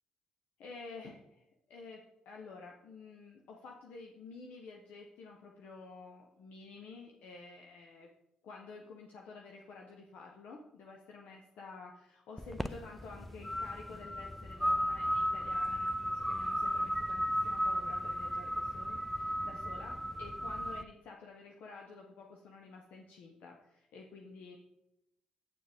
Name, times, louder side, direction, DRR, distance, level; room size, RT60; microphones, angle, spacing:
voice 1, 0.6-8.1 8.4-24.6, left 4 dB, 75° left, 0 dB, 0.8 m, -51 dB
sound 1, 12.4-20.8, equal, 5° left, 0.4 m, -35 dB
8.3 x 6.5 x 3.5 m, 0.86 s
supercardioid pair, 55°, 3 cm